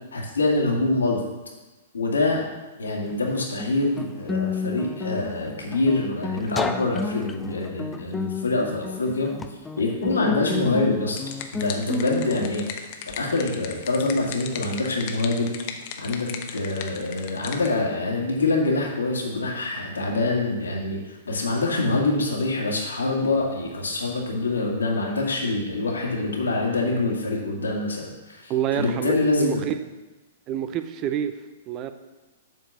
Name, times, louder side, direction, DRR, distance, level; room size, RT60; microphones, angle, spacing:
voice 1, 0.1-1.2 1.9-2.5 2.8-9.3 9.8-11.2 11.5-12.7 13.2-15.5 16.0-29.6, left 2 dB, 85° left, -1 dB, 2.0 m, -25 dB
Guitar, 3.1-12.5, left 4 dB, 10° left, 0.5 m, -31 dB
sound 1, 11.2-17.7, left 7 dB, 50° left, 0.9 m, -37 dB
voice 2, 28.5-29.7 30.5-31.4 31.7-31.9, right 10 dB, 35° right, 10 dB, 0.6 m, -27 dB
7.6 x 4.6 x 6.9 m, 1.2 s
hypercardioid pair, 110°, 0 cm